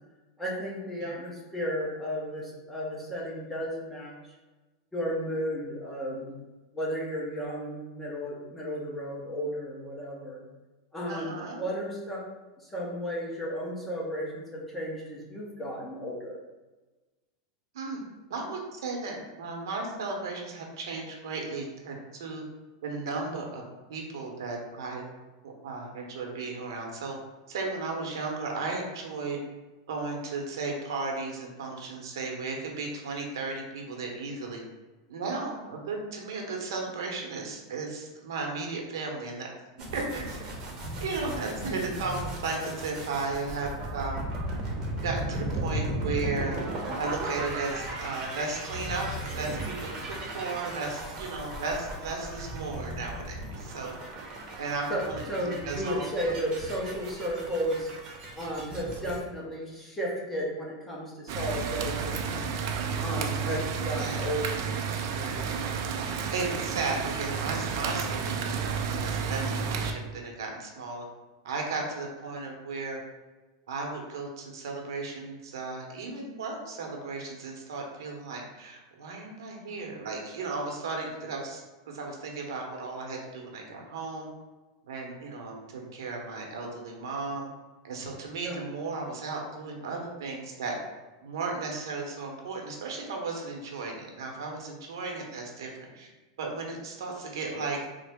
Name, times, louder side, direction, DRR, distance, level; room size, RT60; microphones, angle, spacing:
voice 1, 0.4-4.1 4.9-6.3 6.7-10.4 10.9-12.2 12.7-16.4 41.7-41.8 54.9-55.0 55.3-57.9 58.4-62.5 63.0-64.7 65.0-65.7 88.4-88.6, equal, 5° left, -4 dB, 0.7 m, -34 dB
voice 2, 11.1-11.6 17.7-18.0 18.3-22.4 22.8-23.6 23.9-25.0 25.4-27.2 27.5-29.4 29.9-34.6 35.1-39.5 39.9-40.4 41.0-44.2 45.0-46.6 47.0-53.9 54.6-56.0 63.4-63.6 64.0-64.2 66.3-71.1 71.4-73.0 73.7-84.3 84.9-87.5 87.8-90.8 91.2-96.1 96.4-97.8, right 3 dB, 85° right, 1 dB, 0.8 m, -35 dB
sound 1, 39.8-59.2, right 1 dB, 30° right, 0.8 m, -36 dB
sound 2, 61.3-69.9, right 6 dB, 60° right, 0.4 m, -31 dB
3.8 x 2.0 x 3.4 m, 1.2 s
supercardioid pair, 150°, 2 cm